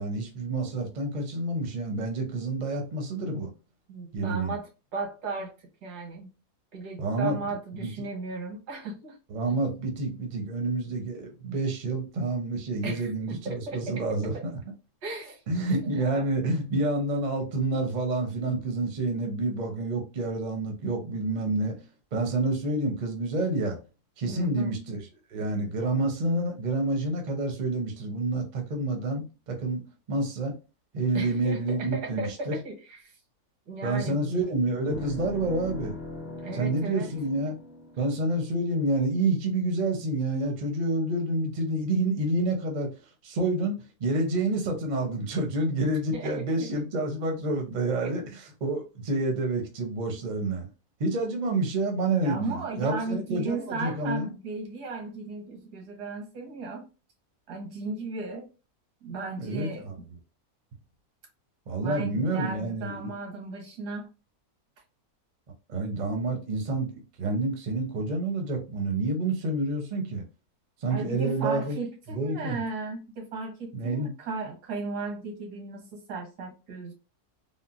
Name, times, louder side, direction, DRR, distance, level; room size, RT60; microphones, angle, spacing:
voice 1, 0.0-3.5 4.1-4.6 7.0-7.9 9.3-14.4 15.5-21.8 22.1-23.8 24.2-25.0 25.3-30.5 30.9-32.5 33.8-35.9 36.5-37.6 38.0-42.9 43.2-48.3 48.6-50.7 51.0-54.3 59.4-59.9 61.7-63.1 65.7-66.9 67.2-70.2 70.8-71.8 72.1-72.6 73.7-74.1, right 2 dB, 45° right, 0.6 m, -28 dB
voice 2, 3.9-6.3 6.7-9.2 12.8-14.4 15.0-15.4 16.0-16.2 24.3-24.8 31.1-33.1 33.7-34.4 36.4-37.1 46.1-46.4 48.0-48.1 52.2-56.9 57.5-58.5 59.0-59.9 61.8-64.1 70.9-76.9, right 3 dB, 85° right, 1.5 m, -36 dB
sound 1, 34.9-39.3, left 2 dB, 50° left, 0.9 m, -40 dB
3.6 x 2.1 x 2.4 m
omnidirectional pair, 1.7 m